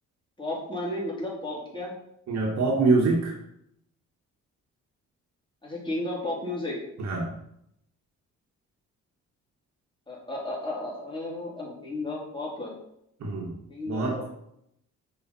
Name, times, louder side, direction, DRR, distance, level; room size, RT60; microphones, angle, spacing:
voice 1, 0.4-1.9 5.6-6.8 10.1-12.7 13.7-14.4, left 1 dB, 15° left, -4 dB, 2.6 m, -33 dB
voice 2, 2.3-3.3 7.0-7.3 13.2-13.5 13.9-14.2, right 3 dB, 60° right, -1 dB, 1.3 m, -24 dB
5.6 x 5.0 x 4.1 m, 0.75 s
cardioid pair, 90°, 30 cm